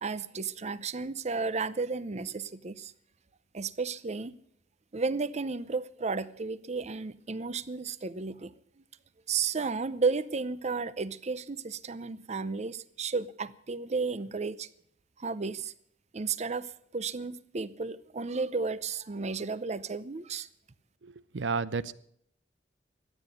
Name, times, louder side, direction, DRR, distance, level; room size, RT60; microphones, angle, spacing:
voice 1, 0.0-2.9 3.5-4.3 4.9-8.5 9.3-14.7 15.2-15.7 16.1-16.7 16.9-20.5, right 4 dB, 40° right, 0.6 m, -33 dB
voice 2, 21.0-21.9, right 4 dB, 80° right, 0.6 m, -32 dB
13.5 x 9.4 x 9.1 m
head